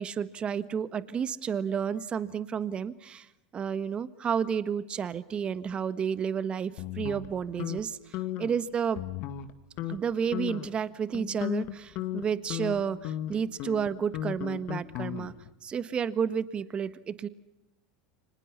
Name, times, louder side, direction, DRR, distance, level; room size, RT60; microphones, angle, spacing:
voice 1, 0.0-3.3 3.5-9.0 9.9-15.3 15.6-17.3, right 7 dB, 30° right, 15 dB, 1.4 m, -31 dB
sound 1, 6.8-7.8 8.1-8.6 9.0-9.5 9.8-10.0 10.3-10.8 11.1-15.5, left 12 dB, 55° left, 2.3 m, -35 dB
30.0 x 25.5 x 5.6 m, 0.87 s
hypercardioid pair, 105°, 3 cm